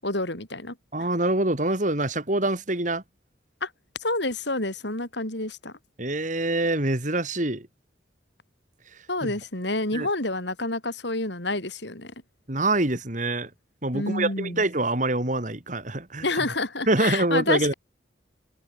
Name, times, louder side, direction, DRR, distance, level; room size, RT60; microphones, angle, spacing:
voice 1, 0.0-1.1 3.6-3.7 4.0-5.7 9.1-12.1 13.9-14.6 16.2-17.7, left 2 dB, 65° left, 6.1 m, -29 dB
voice 2, 0.9-3.0 6.0-7.7 9.2-9.3 9.9-10.1 12.5-13.5 13.8-16.2 16.9-17.7, right 2 dB, 40° right, 3.0 m, -25 dB
head